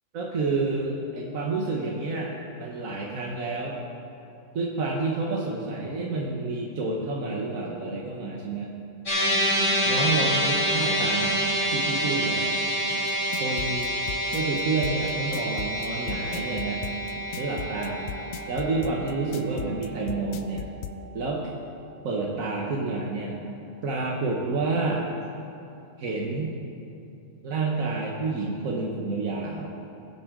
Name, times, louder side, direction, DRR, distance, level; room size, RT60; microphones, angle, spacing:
voice 1, 0.1-3.8 4.5-8.7 9.8-11.3 11.7-12.5 13.4-13.9 14.3-16.8 17.4-18.1 18.5-20.7 21.1-21.4 22.0-23.4 23.8-25.1 26.0-26.5 27.4-29.7, right 3 dB, 85° right, -2 dB, 1.6 m, -29 dB
sound 1, 9.1-21.5, equal, 65° left, 3.4 m, -28 dB
sound 2, 13.1-21.0, left 9 dB, 85° left, 1.0 m, -36 dB
21.0 x 8.1 x 3.7 m, 2.6 s
omnidirectional pair, 1.4 m